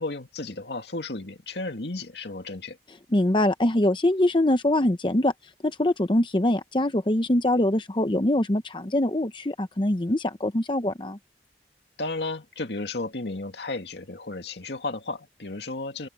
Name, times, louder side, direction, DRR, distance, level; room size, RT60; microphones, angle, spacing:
voice 1, 0.0-2.8 12.0-16.1, left 2 dB, 75° left, 2.2 m, -33 dB
voice 2, 3.1-5.3 5.6-11.2, left 1 dB, 30° left, 0.8 m, -23 dB
head